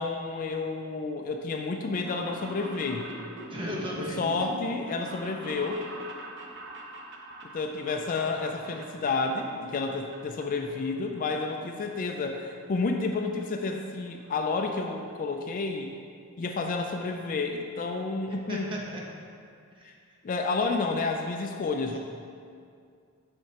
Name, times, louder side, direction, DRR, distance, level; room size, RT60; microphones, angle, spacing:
voice 1, 0.0-3.1 4.0-5.8 7.4-15.9 16.4-18.7 19.8-19.9 20.2-22.0, left 3 dB, 40° left, 4 dB, 0.3 m, -30 dB
sound 1, 1.9-9.5 9.7-10.4 10.8-11.8 12.1-12.2 13.1-13.2 13.4-13.5 13.8-13.9 14.2-14.4 14.8-14.9 15.1-15.2, right 1 dB, 55° right, 0.8 m, -43 dB
voice 2, 3.5-4.2 18.5-19.0 19.7-19.9, equal, 25° right, -4 dB, 1.0 m, -35 dB
7.6 x 6.5 x 2.9 m, 2.3 s
head